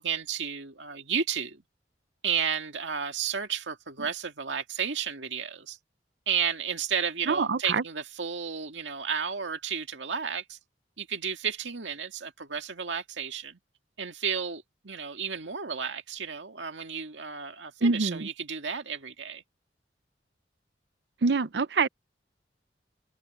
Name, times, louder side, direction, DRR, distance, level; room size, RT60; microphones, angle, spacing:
voice 1, 0.0-1.6 2.2-5.8 6.3-10.6 11.0-13.6 14.0-19.4, right 7 dB, 85° right, 2.0 m, -32 dB
voice 2, 7.3-7.8 17.8-18.3 21.2-21.9, right 4 dB, 65° right, 0.6 m, -25 dB
head